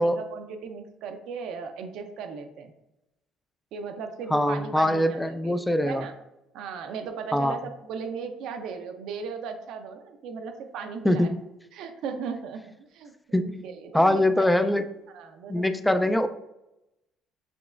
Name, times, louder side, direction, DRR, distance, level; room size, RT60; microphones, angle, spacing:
voice 1, 0.0-2.7 3.7-5.5 5.8-6.1 6.5-11.3 11.7-14.7 15.1-15.7 16.0-16.2, right 5 dB, 70° right, 6 dB, 0.5 m, -37 dB
voice 2, 4.3-6.1 7.3-7.6 11.0-11.5 13.3-13.7 13.9-14.8 15.5-16.3, left 1 dB, 5° left, 10 dB, 0.3 m, -23 dB
5.1 x 3.0 x 2.4 m, 0.92 s
supercardioid pair, 80°, 0 cm